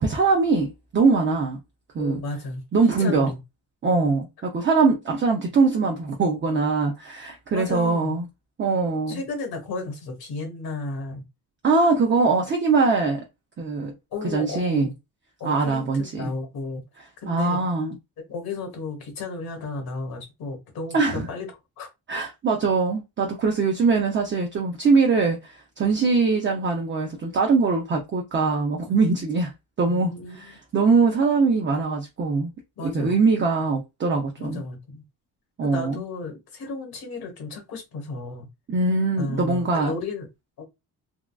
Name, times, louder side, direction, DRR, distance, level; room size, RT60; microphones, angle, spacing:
voice 1, 0.0-1.6 1.9-2.2 2.7-3.3 3.8-8.2 8.6-9.2 11.6-13.2 13.6-13.9 14.2-14.9 15.4-16.3 17.2-18.0 20.9-21.3 22.1-29.5 29.8-32.5 32.8-34.6 35.6-36.0 38.7-39.9, right 4 dB, 30° right, 0.5 m, -22 dB
voice 2, 2.0-2.6 3.0-3.4 7.5-8.2 9.1-11.2 14.1-14.9 15.4-16.8 17.2-17.6 18.2-21.5 21.8-21.9 29.9-30.6 32.8-33.2 34.4-35.0 35.6-38.5 39.2-40.3 40.6-40.7, left 3 dB, 65° left, 1.4 m, -33 dB
3.6 x 2.2 x 2.3 m
cardioid pair, 150°, 39 cm